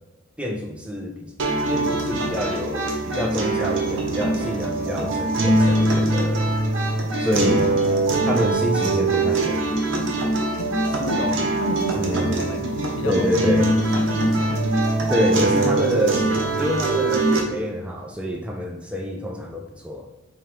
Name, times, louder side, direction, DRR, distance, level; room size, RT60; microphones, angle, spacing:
voice 1, 0.4-1.3 1.7-6.6 7.2-7.7 8.3-9.7 11.9-12.5 13.0-13.7 15.1-20.1, equal, 5° right, 1 dB, 0.4 m, -27 dB
sound 1, 1.4-17.4, right 2 dB, 65° right, 0.8 m, -22 dB
voice 2, 7.3-7.8 10.6-14.7, left 3 dB, 70° left, 7 dB, 0.5 m, -32 dB
3.6 x 2.9 x 4.7 m, 1.1 s
head